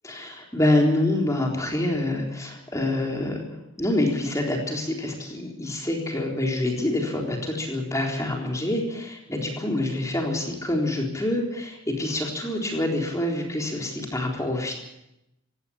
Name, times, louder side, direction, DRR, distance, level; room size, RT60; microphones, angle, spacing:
voice 1, 0.0-3.4 3.8-14.8, left 1 dB, 15° left, 0 dB, 3.9 m, -26 dB
17.5 x 17.0 x 8.9 m, 0.86 s
head